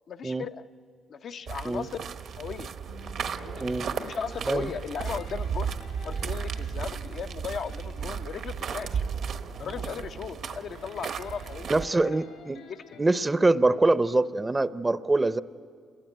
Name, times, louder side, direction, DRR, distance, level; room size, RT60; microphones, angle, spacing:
voice 1, 0.1-0.6 1.1-2.1 2.4-2.7 3.3-3.7 4.0-5.7 6.0-9.0 9.6-12.2 12.7-13.0, left 6 dB, 60° left, 7 dB, 0.8 m, -37 dB
sound 1, 1.5-11.9, right 6 dB, 65° right, 1.3 m, -34 dB
sound 2, 2.9-13.1, left 5 dB, 75° left, 5.3 m, -51 dB
voice 2, 11.7-12.6 13.0-15.4, right 2 dB, 20° right, 13 dB, 0.7 m, -24 dB
28.0 x 21.5 x 9.3 m, 2.1 s
cardioid pair, 90°, 0 cm